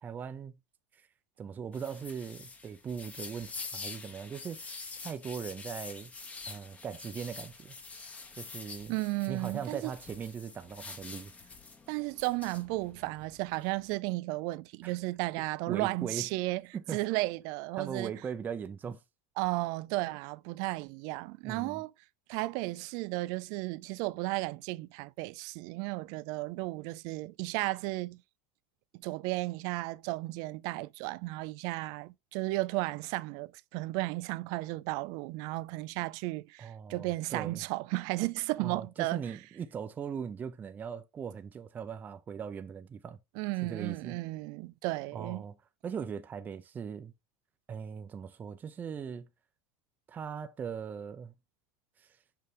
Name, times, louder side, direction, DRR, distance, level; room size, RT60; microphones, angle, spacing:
voice 1, 0.0-0.6 0.9-1.1 1.4-4.8 5.0-6.1 6.5-7.7 8.4-9.0 9.3-11.3 14.8-15.0 15.7-16.3 16.7-17.2 17.8-19.0 21.4-21.8 36.6-37.6 38.6-43.2 43.6-44.2 45.1-45.6 45.8-47.1 47.7-49.3 50.1-51.3 52.0-52.2, right 7 dB, 25° right, 0.7 m, -40 dB
sound 1, 1.7-13.9, left 4 dB, 20° left, 1.2 m, -46 dB
voice 2, 8.9-9.9 11.9-16.6 16.9-18.1 19.4-21.9 22.3-28.2 29.0-39.2 43.4-45.4, right 21 dB, 60° right, 0.5 m, -34 dB
6.8 x 5.0 x 3.4 m
supercardioid pair, 130°, 7 cm